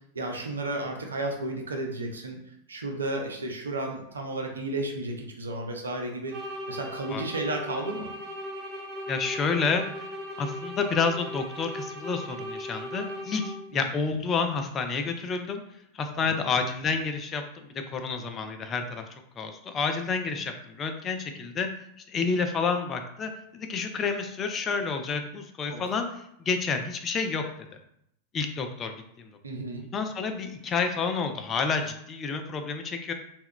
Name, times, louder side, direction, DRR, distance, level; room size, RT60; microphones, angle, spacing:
voice 1, 0.1-2.4 2.7-8.1 13.7-13.8 16.1-16.5 25.7-25.8 29.4-29.9, right 2 dB, 75° right, 2 dB, 0.5 m, -33 dB
sound 1, 6.3-13.8, equal, 35° right, 0.7 m, -38 dB
voice 2, 9.1-10.1 10.4-15.6 15.9-19.0 19.4-21.7 22.1-26.1 26.5-27.5 28.3-29.3 29.8-33.1, left 5 dB, 25° left, 6 dB, 0.3 m, -29 dB
2.2 x 2.1 x 3.5 m, 0.75 s
figure-of-eight pair, 90°, 0 cm